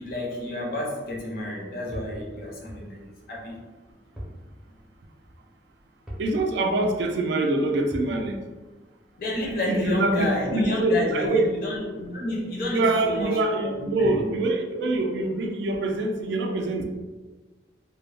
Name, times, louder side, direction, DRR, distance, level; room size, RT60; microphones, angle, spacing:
voice 1, 0.0-3.5 9.2-13.3 13.6-14.3, left 1 dB, 50° left, -2 dB, 0.6 m, -30 dB
sound 1, 1.9-2.2 4.2-4.4 4.7-4.8 6.1-6.4 7.9-8.2, equal, 5° right, 0.5 m, -38 dB
voice 2, 6.2-8.4 9.7-11.5 12.7-16.8, right 2 dB, 75° right, 4 dB, 0.3 m, -24 dB
2.2 x 2.0 x 3.2 m, 1.3 s
head